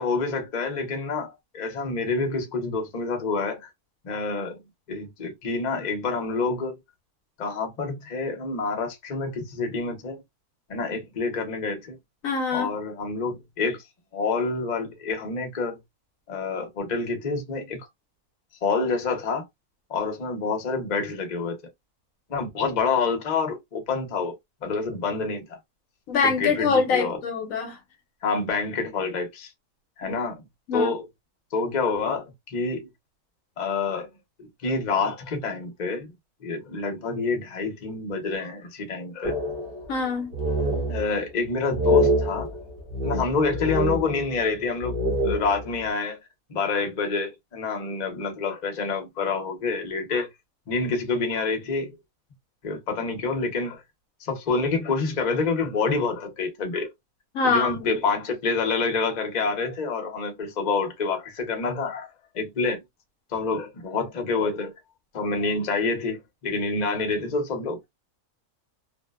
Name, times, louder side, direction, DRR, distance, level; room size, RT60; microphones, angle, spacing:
voice 1, 0.0-3.7 4.0-4.6 4.9-6.7 7.4-10.2 10.7-12.0 12.5-13.8 14.1-15.8 16.3-17.9 18.6-19.4 19.9-21.6 22.3-24.4 24.6-25.6 26.2-27.2 28.2-29.5 30.0-30.4 30.7-31.1 31.5-32.9 33.6-34.1 34.4-36.1 36.4-39.4 40.9-42.5 43.0-45.0 45.2-46.2 46.5-50.3 50.7-52.0 52.6-53.8 54.2-56.9 57.4-62.1 62.3-62.8 63.3-64.7 65.1-67.9, left 4 dB, 40° left, 0.7 m, -27 dB
voice 2, 12.2-12.7 26.1-27.8 30.1-30.2 30.7-30.9 39.9-40.3 57.3-57.9, left 5 dB, 70° left, 1.0 m, -24 dB
sound 1, 39.2-40.1 40.3-41.3 41.7-44.5 44.8-45.8, equal, 50° right, 0.6 m, -26 dB
2.6 x 2.1 x 2.2 m
omnidirectional pair, 1.6 m